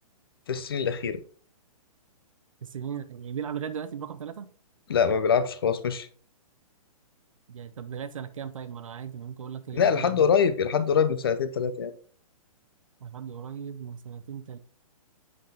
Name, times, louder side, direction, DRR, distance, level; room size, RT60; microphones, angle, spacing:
voice 1, 0.5-1.2 4.9-6.1 9.7-11.9, left 7 dB, 40° left, 0.6 m, -24 dB
voice 2, 2.6-4.5 7.5-10.3 13.0-14.6, right 8 dB, 60° right, 0.9 m, -37 dB
7.9 x 5.7 x 3.5 m
hypercardioid pair, 180°, 19 cm